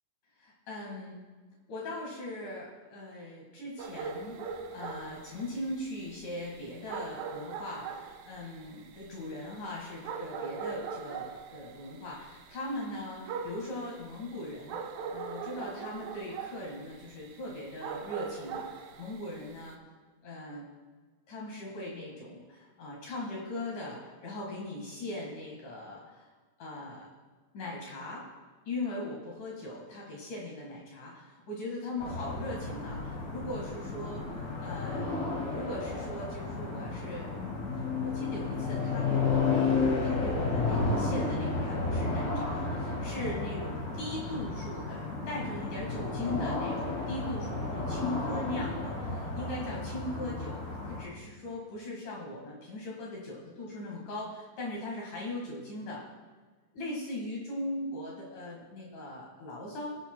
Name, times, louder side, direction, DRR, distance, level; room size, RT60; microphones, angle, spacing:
voice 1, 0.4-1.2 1.7-19.8 20.2-20.7 21.3-26.3 26.6-27.1 27.5-28.3 28.7-35.2 35.5-37.3 37.7-39.5 39.8-50.6 50.9-56.0 56.7-59.9, left 1 dB, 65° left, -3 dB, 3.2 m, -39 dB
sound 1, 3.8-19.7, right 5 dB, 80° right, 1.7 m, -41 dB
sound 2, 32.0-51.0, left 3 dB, 90° left, 4.4 m, -32 dB
21.5 x 8.2 x 2.2 m, 1.4 s
omnidirectional pair, 4.0 m